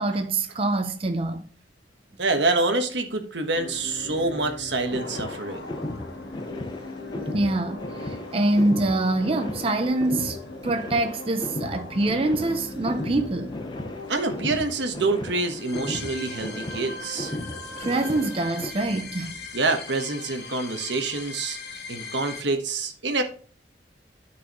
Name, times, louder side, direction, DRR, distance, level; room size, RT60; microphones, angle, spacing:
voice 1, 0.0-1.5 7.0-10.4 10.6-13.6 17.8-19.4, right 2 dB, 30° right, 0.5 m, -25 dB
voice 2, 2.2-5.7 14.1-17.3 19.5-21.6 21.9-23.2, right 3 dB, 80° right, 1.3 m, -26 dB
sound 1, 3.5-22.4, left 3 dB, 65° left, 1.1 m, -39 dB
sound 2, 4.9-18.7, left 1 dB, 25° left, 0.6 m, -36 dB
12.5 x 4.7 x 3.0 m
head